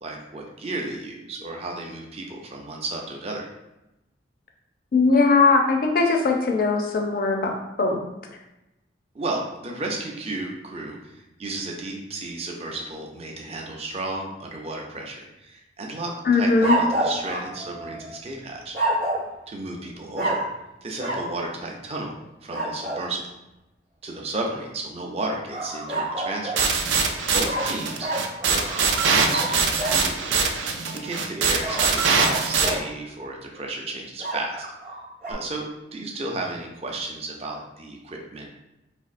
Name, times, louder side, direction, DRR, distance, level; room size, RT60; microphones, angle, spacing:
voice 1, 0.0-3.5 9.1-18.8 19.5-20.5 20.8-22.2 22.4-23.3 24.0-26.7 27.0-28.1 28.4-30.5 30.9-34.6 35.3-35.6 35.9-38.5, right 2 dB, 35° right, 0 dB, 0.5 m, -33 dB
voice 2, 4.9-8.0 16.2-16.8, left 4 dB, 50° left, 2 dB, 0.4 m, -20 dB
sound 1, 16.6-18.2 18.7-19.3 20.2-20.6 21.0-21.3 22.5-23.1 25.5-26.7 27.4-30.0 31.6-32.9 34.2-35.3, right 1 dB, 55° right, 0.9 m, -28 dB
sound 2, 26.6-32.7, right 5 dB, 85° right, 0.4 m, -23 dB
4.2 x 2.6 x 2.4 m, 0.94 s
head